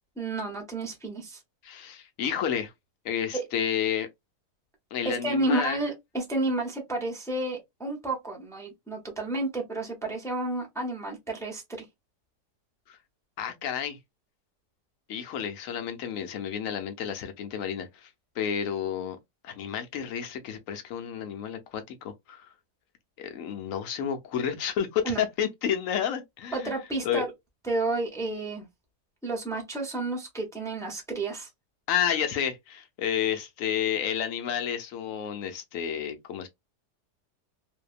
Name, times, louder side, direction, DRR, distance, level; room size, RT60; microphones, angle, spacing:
voice 1, 0.2-1.4 3.3-3.4 5.0-11.6 25.0-25.2 26.5-27.3 27.6-28.6 29.2-31.5, right 2 dB, 5° left, 0.4 m, -31 dB
voice 2, 1.6-2.7 3.0-4.1 4.9-5.8 12.9-13.0 13.4-14.0 15.1-18.1 18.4-19.2 19.4-22.5 23.2-26.7 27.0-27.2 31.9-36.5, left 8 dB, 65° left, 0.9 m, -30 dB
2.7 x 2.2 x 2.4 m
omnidirectional pair, 1.7 m